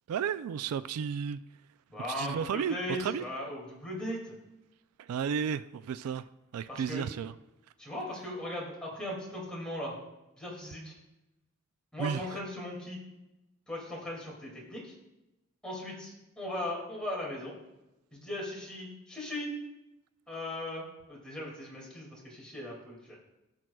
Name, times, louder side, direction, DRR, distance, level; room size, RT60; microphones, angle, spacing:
voice 1, 0.1-1.4 2.2-3.2 5.0-6.2 6.5-7.3 12.0-12.4, right 7 dB, 90° right, 14 dB, 0.3 m, -33 dB
voice 2, 1.9-4.4 6.7-7.1 7.8-9.9 10.4-10.9 11.9-13.0 13.7-14.9 15.6-17.6 18.1-19.5 20.3-23.2, left 1 dB, 5° left, -4 dB, 2.3 m, -38 dB
16.0 x 6.2 x 2.3 m, 0.96 s
head